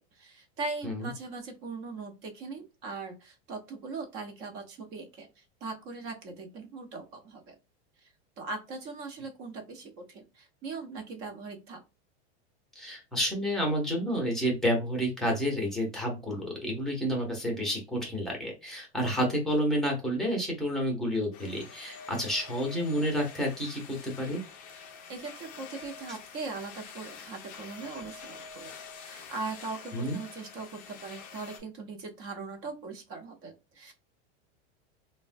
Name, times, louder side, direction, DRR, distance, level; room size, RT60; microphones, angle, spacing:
voice 1, 0.1-7.6 8.0-8.1 8.4-11.8 24.8-33.9, right 3 dB, 40° right, 4 dB, 0.7 m, -40 dB
voice 2, 12.8-24.4 26.1-26.2 29.9-30.2, equal, ahead, 0 dB, 0.7 m, -30 dB
sound 1, 21.3-31.6, left 5 dB, 25° left, 0.3 m, -47 dB
3.0 x 2.2 x 2.5 m, 0.28 s
supercardioid pair, 145°, 34 cm